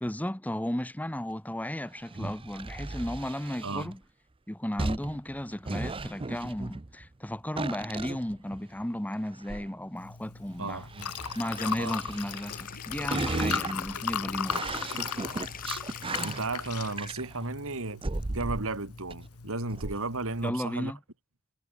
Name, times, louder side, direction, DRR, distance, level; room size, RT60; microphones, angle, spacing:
voice 1, 0.0-4.0 4.5-10.8 11.3-14.6 20.4-21.0, left 1 dB, 5° left, 0.9 m, -34 dB
sound 1, 2.0-3.9 4.8-7.1 7.6-8.8 9.3-9.7 10.6-12.8 13.1-17.5 18.0-18.8 19.1-19.2 19.7-20.0, right 3 dB, 25° right, 0.7 m, -36 dB
voice 2, 3.6-3.9 10.6-10.9 11.8-11.9 16.2-18.0 18.3-20.9, right 3 dB, 65° right, 3.0 m, -34 dB
Liquid, 10.0-20.5, left 7 dB, 80° left, 1.4 m, -37 dB
sound 2, 10.8-17.1, left 5 dB, 40° left, 7.4 m, -46 dB
head